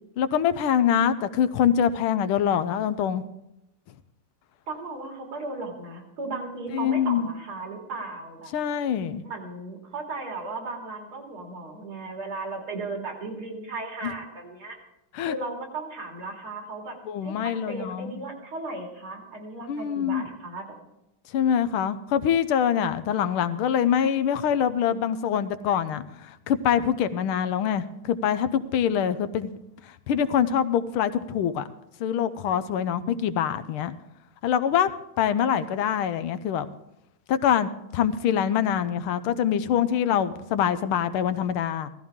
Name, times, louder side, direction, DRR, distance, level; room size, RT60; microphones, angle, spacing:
voice 1, 0.2-3.2 6.7-7.3 8.5-9.2 14.0-14.1 15.1-15.4 17.1-18.2 19.7-20.3 21.3-29.5 30.1-31.7 32.0-33.9 34.4-34.9 35.2-36.7 37.3-41.9, left 8 dB, 80° left, 12 dB, 1.6 m, -24 dB
voice 2, 4.7-8.5 9.2-14.8 15.3-17.0 17.2-20.6 32.8-33.2, right 3 dB, 80° right, 1 dB, 3.4 m, -36 dB
16.0 x 14.0 x 3.6 m, 0.86 s
omnidirectional pair, 2.3 m